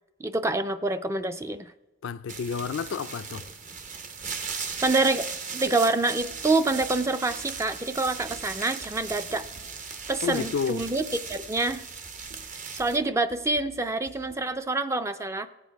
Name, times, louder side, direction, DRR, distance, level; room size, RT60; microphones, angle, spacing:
voice 1, 0.2-1.7 4.8-5.3 5.5-9.4 10.1-11.0 11.3-11.8 12.7-15.5, right 2 dB, 15° right, 0.3 m, -26 dB
voice 2, 2.0-3.4 10.2-10.9, left 6 dB, 80° left, 0.4 m, -30 dB
sound 1, 2.3-13.0, right 5 dB, 40° right, 0.7 m, -37 dB
sound 2, 6.2-14.3, equal, 75° right, 2.1 m, -53 dB
16.0 x 8.3 x 4.6 m
head